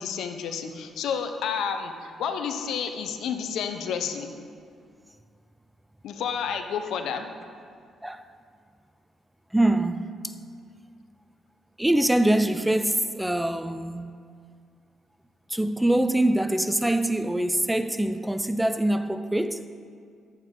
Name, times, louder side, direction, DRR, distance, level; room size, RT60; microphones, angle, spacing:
voice 1, 0.0-4.3 6.0-7.3, left 7 dB, 80° left, 0.7 m, -30 dB
voice 2, 9.5-10.1 11.8-14.1 15.5-19.7, right 1 dB, 5° right, 0.4 m, -24 dB
11.0 x 7.9 x 3.8 m
cardioid pair, 90°, 0 cm